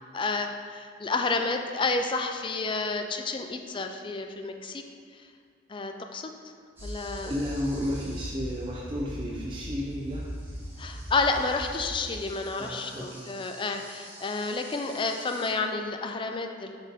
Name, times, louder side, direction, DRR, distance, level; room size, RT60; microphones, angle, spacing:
voice 1, 0.1-4.8 5.1-5.2 5.7-6.3 6.8-7.3 10.8-16.8, left 3 dB, 25° left, 5 dB, 0.4 m, -30 dB
sound 1, 6.8-9.3 9.6-15.5, right 1 dB, 10° right, 1.2 m, -50 dB
sound 2, 6.8-12.0, equal, 70° right, 1.2 m, -39 dB
voice 2, 7.2-10.3 12.6-13.3, equal, 25° right, -3 dB, 0.5 m, -33 dB
7.9 x 4.3 x 3.5 m, 2.1 s
head